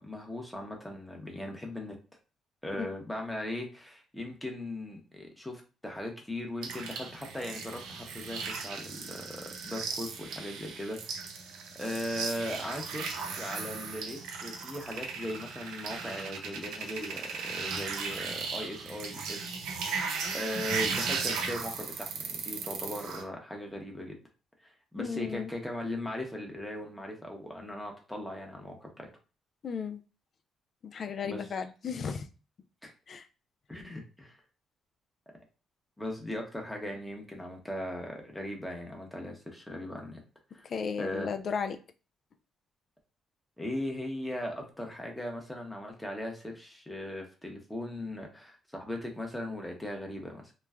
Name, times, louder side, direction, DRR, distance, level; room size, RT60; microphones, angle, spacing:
voice 1, 0.0-2.0 2.6-20.1 20.3-24.1 24.6-29.1 31.2-31.5 32.8-32.9 33.7-34.4 36.0-40.2 40.5-40.6 41.0-41.3 43.6-50.5, left 1 dB, 5° left, 1 dB, 0.8 m, -39 dB
sound 1, 6.6-23.2, right 5 dB, 85° right, 0.5 m, -37 dB
voice 2, 25.0-25.5 29.6-30.0 30.8-32.3 33.1-33.2 40.6-41.8, left 6 dB, 50° left, 8 dB, 0.3 m, -35 dB
3.0 x 2.2 x 2.3 m, 0.34 s
cardioid pair, 90°, 0 cm